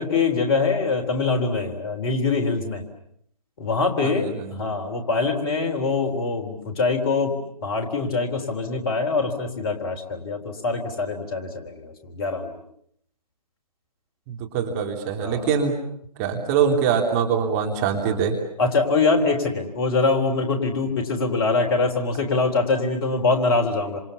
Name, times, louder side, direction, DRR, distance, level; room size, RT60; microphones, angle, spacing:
voice 1, 0.0-2.8 3.6-7.4 7.6-12.6 15.2-15.5 18.6-24.0, left 3 dB, 35° left, 3 dB, 3.8 m, -24 dB
voice 2, 4.0-4.7 14.3-15.7 16.2-18.4, right 7 dB, 25° right, 3 dB, 3.4 m, -23 dB
28.5 x 27.5 x 7.1 m, 0.68 s
figure-of-eight pair, 145°, 21 cm